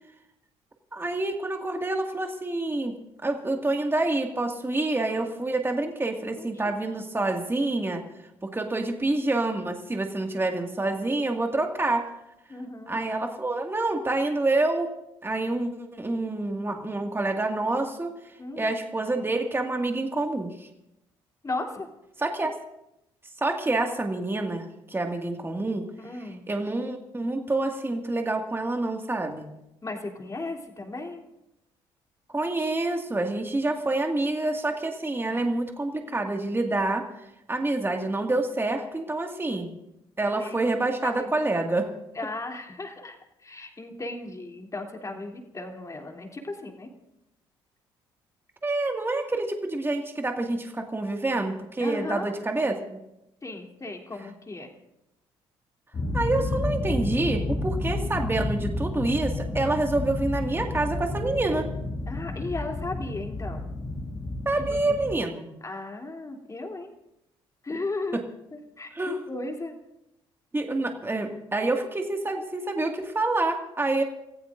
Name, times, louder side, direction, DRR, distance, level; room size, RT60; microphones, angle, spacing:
voice 1, 0.9-2.9 3.2-8.0 8.4-12.1 12.9-14.9 15.2-18.1 18.6-20.7 22.2-22.5 23.4-25.9 26.5-29.5 32.3-39.8 40.2-41.9 48.6-53.0 56.1-61.7 64.5-65.5 68.9-69.2 70.5-74.0, right 2 dB, 20° right, 3 dB, 2.0 m, -27 dB
voice 2, 12.5-13.0 18.4-18.8 21.4-21.9 26.0-26.5 29.8-31.2 35.2-35.4 40.4-40.5 41.0-41.3 42.1-46.9 51.8-52.3 53.4-54.7 62.1-63.7 64.7-65.1 65.6-66.9 67.6-68.2 68.5-69.7, left 2 dB, 25° left, 2 dB, 3.1 m, -36 dB
sound 1, 55.9-65.1, left 2 dB, 45° left, 3.0 m, -31 dB
29.5 x 15.0 x 2.6 m, 0.87 s
hypercardioid pair, 60°, 12 cm